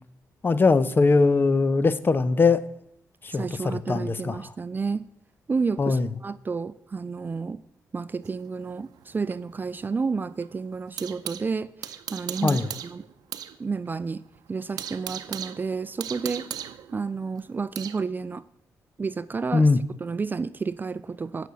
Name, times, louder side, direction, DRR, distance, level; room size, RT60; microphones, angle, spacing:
voice 1, 0.4-2.6 3.2-4.4 5.8-6.1 12.4-12.7 19.5-19.8, left 4 dB, 35° left, 15 dB, 0.6 m, -21 dB
voice 2, 3.3-5.0 5.5-7.6 7.9-13.0 13.6-14.2 14.5-16.5 16.9-18.4 19.0-19.7 20.0-21.5, right 4 dB, 30° right, 16 dB, 0.4 m, -31 dB
sound 1, 8.2-11.5 11.8-13.6 13.9-14.0 14.4-18.0, right 10 dB, 90° right, 0.6 m, -38 dB
9.2 x 6.1 x 8.2 m, 0.75 s
cardioid pair, 100°, 7 cm